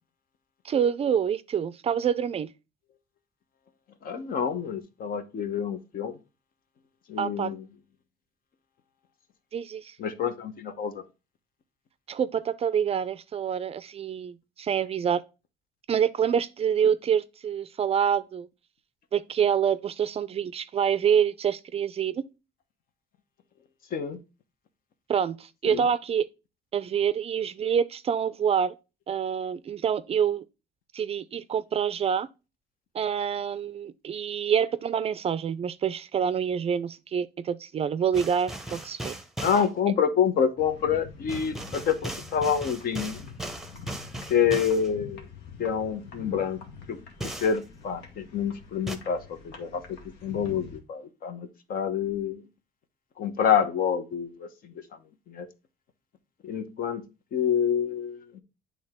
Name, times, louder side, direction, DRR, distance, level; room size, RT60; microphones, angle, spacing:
voice 1, 0.6-2.5 7.2-7.5 9.5-10.0 12.1-15.2 15.9-18.5 19.1-22.2 25.1-26.3 26.7-28.7 29.1-30.4 30.9-32.3 32.9-39.1, right 8 dB, 35° right, 0.4 m, -26 dB
voice 2, 4.0-6.2 7.1-7.6 10.0-11.0 23.9-24.2 25.7-25.8 39.4-43.2 44.3-45.3 45.6-46.6 46.9-47.0 47.4-52.4 53.2-54.7 55.3-55.5 56.4-57.0 57.3-58.4, left 7 dB, 60° left, 1.0 m, -27 dB
sound 1, 38.1-39.7 41.3-44.9 47.2-47.6 48.9-49.0, right 1 dB, ahead, 0.8 m, -37 dB
sound 2, 40.6-50.8, left 5 dB, 90° left, 1.5 m, -45 dB
8.5 x 3.4 x 3.6 m
cardioid pair, 110°, 17 cm